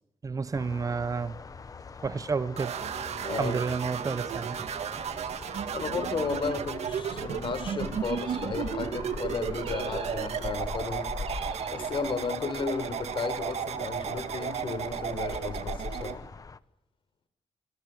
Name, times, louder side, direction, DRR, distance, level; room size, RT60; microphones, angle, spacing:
voice 1, 0.2-1.4 2.0-2.7 3.3-4.7, right 5 dB, 30° right, 1.0 m, -30 dB
sound 1, 0.5-16.6, left 4 dB, 30° left, 1.2 m, -42 dB
sound 2, 2.6-16.2, right 8 dB, 75° right, 1.9 m, -34 dB
voice 2, 3.2-3.6 5.7-11.1 11.7-16.3, left 5 dB, 50° left, 4.4 m, -34 dB
sound 3, 8.0-9.0 9.6-10.6 11.2-12.4, right 6 dB, 55° right, 2.2 m, -43 dB
28.5 x 26.0 x 6.9 m
wide cardioid pair, 135°, 11 cm